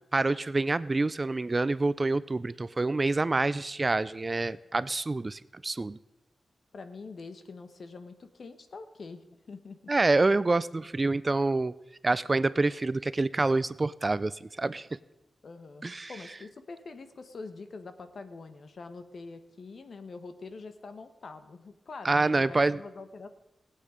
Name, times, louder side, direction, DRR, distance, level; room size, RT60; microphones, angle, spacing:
voice 1, 0.1-6.0 9.9-11.7 12.0-14.9 15.8-16.1 22.0-22.8, right 3 dB, 30° right, 17 dB, 0.4 m, -27 dB
voice 2, 6.7-9.9 15.4-15.8 16.1-23.3, left 4 dB, 60° left, 10 dB, 1.2 m, -45 dB
19.5 x 8.7 x 5.0 m, 0.95 s
wide cardioid pair, 105°, 0 cm